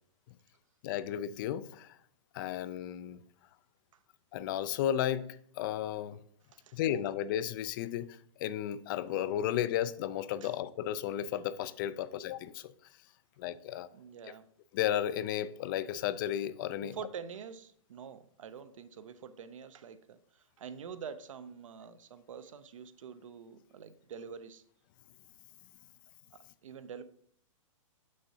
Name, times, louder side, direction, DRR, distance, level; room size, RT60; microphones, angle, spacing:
voice 1, 0.8-2.0 2.3-3.2 4.3-6.2 6.7-12.7 13.4-13.9 14.7-16.9, left 11 dB, 40° left, 0.4 m, -34 dB
voice 2, 13.9-14.5 16.8-24.6 26.3-27.0, right 7 dB, 70° right, 0.5 m, -46 dB
6.9 x 6.3 x 2.8 m
hypercardioid pair, 120°, 17 cm